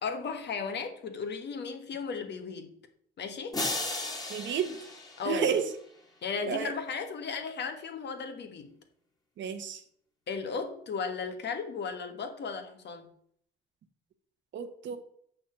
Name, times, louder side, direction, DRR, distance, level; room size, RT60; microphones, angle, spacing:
voice 1, 0.0-2.7 3.2-3.6 5.2-5.5 6.2-8.8 10.3-13.1, left 5 dB, 60° left, 6 dB, 1.6 m, -35 dB
sound 1, 3.5-5.9, left 2 dB, 20° left, 2.2 m, -35 dB
voice 2, 4.3-4.8 5.2-5.7 6.4-6.7 9.4-9.8 14.5-15.0, right 7 dB, 70° right, 8 dB, 1.3 m, -31 dB
6.8 x 5.9 x 6.9 m, 0.66 s
cardioid pair, 90°, 20 cm